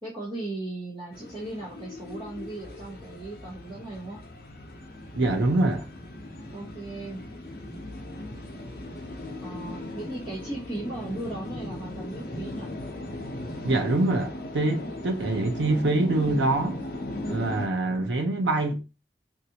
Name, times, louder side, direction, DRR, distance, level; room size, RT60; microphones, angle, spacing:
voice 1, 0.0-4.2 6.5-7.2 9.4-12.7, right 2 dB, 25° right, 1.1 m, -37 dB
sound 1, 1.1-17.7, left 1 dB, 55° left, 0.7 m, -38 dB
voice 2, 5.2-5.9 13.6-16.8 17.3-18.8, right 2 dB, 85° right, 0.6 m, -25 dB
3.3 x 2.6 x 2.8 m
head